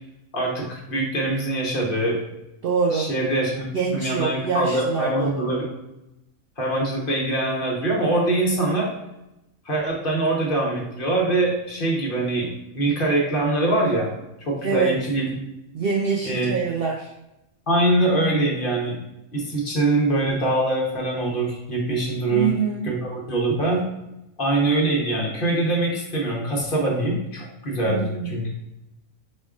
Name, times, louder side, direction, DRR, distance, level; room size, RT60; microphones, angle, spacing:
voice 1, 0.3-2.2 2.9-5.7 6.6-8.9 9.6-14.1 14.4-15.2 16.2-16.5 17.7-19.0 19.3-22.5 22.8-23.8 24.4-28.5, right 2 dB, 40° left, -2 dB, 1.1 m, -23 dB
voice 2, 2.6-3.1 3.7-5.4 14.6-14.9 15.7-17.1 22.3-22.9 27.8-28.5, right 5 dB, 65° right, -1 dB, 0.6 m, -25 dB
4.8 x 4.2 x 2.4 m, 0.91 s
omnidirectional pair, 1.5 m